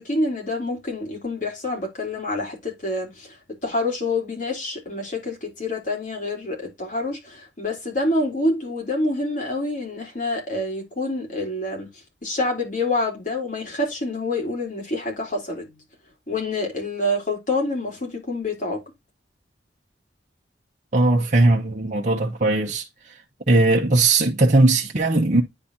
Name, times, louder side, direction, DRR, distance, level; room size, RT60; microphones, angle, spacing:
voice 1, 0.0-3.4 3.6-11.9 12.2-15.8 16.3-18.8, left 2 dB, 45° left, 3.7 m, -27 dB
voice 2, 20.9-22.8 23.5-25.4, right 2 dB, 40° right, 0.9 m, -18 dB
9.8 x 4.2 x 2.7 m
head